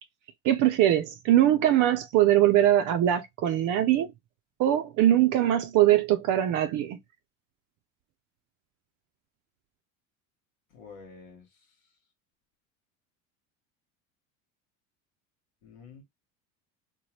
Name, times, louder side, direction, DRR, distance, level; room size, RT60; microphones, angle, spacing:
voice 1, 0.4-4.1 4.6-7.0, right 12 dB, 50° right, 0.5 m, -22 dB
voice 2, 10.7-11.7 15.6-16.0, left 5 dB, 85° left, 1.1 m, -49 dB
2.8 x 2.2 x 3.0 m
hypercardioid pair, 85°, 40 cm